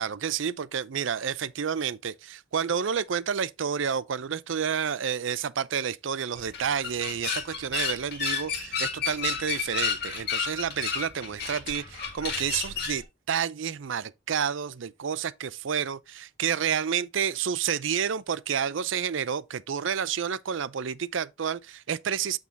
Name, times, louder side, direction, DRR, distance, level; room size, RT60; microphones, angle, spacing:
voice 1, 0.0-22.4, right 7 dB, 80° right, 0.5 m, -30 dB
sound 1, 6.4-13.0, left 6 dB, 50° left, 2.1 m, -32 dB
8.4 x 3.8 x 3.9 m
head